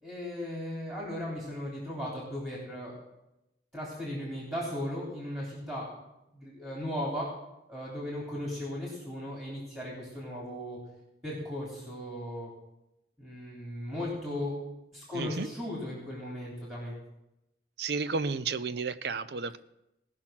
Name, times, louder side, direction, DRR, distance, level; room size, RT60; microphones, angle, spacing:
voice 1, 0.0-3.0 3.7-5.9 6.3-7.3 7.7-10.8 11.2-12.5 13.2-14.5 14.9-16.9, left 1 dB, 15° right, -6 dB, 3.3 m, -37 dB
voice 2, 15.1-15.5 17.8-19.6, right 4 dB, 60° right, 13 dB, 0.5 m, -32 dB
18.0 x 6.1 x 5.9 m, 0.89 s
head